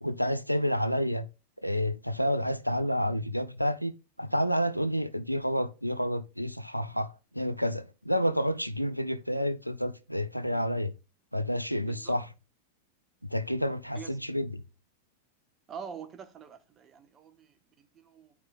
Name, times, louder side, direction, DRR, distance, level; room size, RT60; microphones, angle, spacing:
voice 1, 0.0-1.3 1.6-3.9 4.2-10.9 11.3-12.3 13.3-14.6, equal, 90° left, 0.4 m, -29 dB
voice 2, 11.9-12.2 13.9-14.1 15.7-18.3, right 7 dB, 25° right, 0.8 m, -45 dB
11.0 x 4.7 x 2.4 m
figure-of-eight pair, 90°, 0 cm